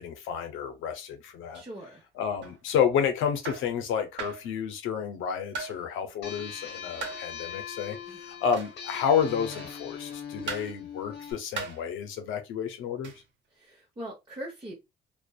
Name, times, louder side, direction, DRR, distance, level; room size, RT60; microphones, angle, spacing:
voice 1, 0.0-1.6 2.2-13.1, left 7 dB, 90° left, 0.6 m, -30 dB
voice 2, 1.5-2.1 8.1-8.2 13.5-14.7, equal, 25° right, 0.9 m, -41 dB
sound 1, 2.4-2.6 3.4-3.7 4.2-4.5 5.5-5.8 7.0-7.3 8.5-8.8 9.5-9.8 10.5-10.8 11.5-11.8 13.0-13.2, right 4 dB, 70° right, 0.7 m, -37 dB
sound 2, 6.2-11.3, left 7 dB, 60° left, 0.8 m, -41 dB
2.5 x 2.2 x 2.3 m
cardioid pair, 90°, 20 cm